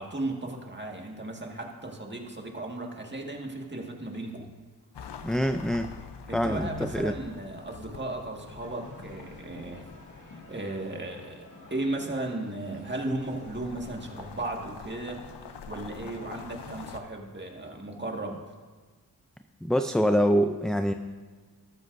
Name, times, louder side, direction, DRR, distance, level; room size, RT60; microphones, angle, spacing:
voice 1, 0.0-4.5 6.3-9.9 10.2-15.3 15.7-18.4, right 2 dB, 25° right, 0 dB, 1.9 m, -35 dB
sound 1, 4.9-11.4 12.6-17.0, left 5 dB, 85° left, 0.8 m, -45 dB
voice 2, 5.2-5.9 6.3-7.2 19.6-20.9, equal, ahead, 6 dB, 0.4 m, -25 dB
sound 2, 8.6-14.5, left 2 dB, 45° left, 2.2 m, -50 dB
13.5 x 12.5 x 2.7 m, 1.4 s
cardioid pair, 60°, 40 cm